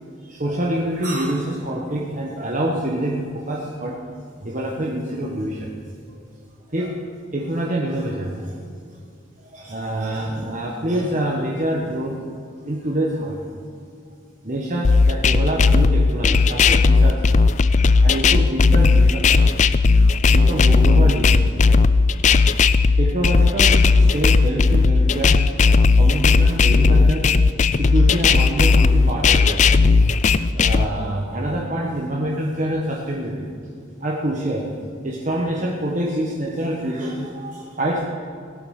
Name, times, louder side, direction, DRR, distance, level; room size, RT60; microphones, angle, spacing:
voice 1, 0.2-4.1 4.4-5.7 6.7-7.0 7.3-8.6 9.4-12.2 12.6-13.5 14.4-17.4 18.0-19.6 20.1-21.4 23.0-25.4 26.0-27.3 27.7-29.6 30.5-33.5 34.0-34.7 35.0-38.1, right 1 dB, 35° right, -2 dB, 1.2 m, -26 dB
sound 1, 14.8-30.9, left 4 dB, 35° left, 0.3 m, -15 dB
17.0 x 9.0 x 6.5 m, 2.4 s
head